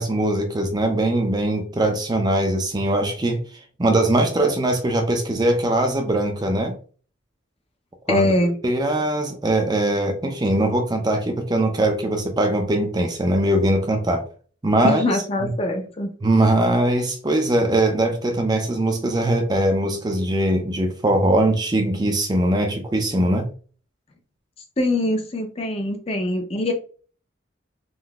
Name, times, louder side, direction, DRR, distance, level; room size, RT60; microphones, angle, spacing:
voice 1, 0.0-3.4 3.8-6.8 8.1-8.3 8.6-14.3 14.6-15.0 15.4-15.5 16.2-23.5, right 1 dB, 20° right, 4 dB, 0.4 m, -21 dB
voice 2, 8.1-8.6 14.8-16.1 24.8-26.7, left 1 dB, 30° left, 5 dB, 0.6 m, -23 dB
3.8 x 2.6 x 2.3 m, 0.40 s
head